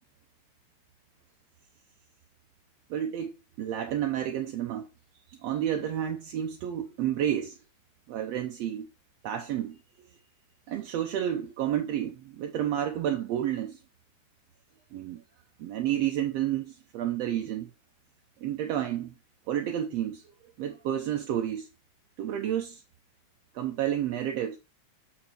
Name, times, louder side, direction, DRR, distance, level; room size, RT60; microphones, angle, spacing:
voice 1, 2.9-4.9 5.3-7.6 8.1-8.9 9.2-9.8 10.7-13.8 14.9-15.2 15.6-17.7 18.4-19.1 19.5-20.2 20.6-21.7 22.2-22.8 23.5-24.6, right 10 dB, 75° right, 1.7 m, -30 dB
7.5 x 5.1 x 4.4 m
omnidirectional pair, 3.4 m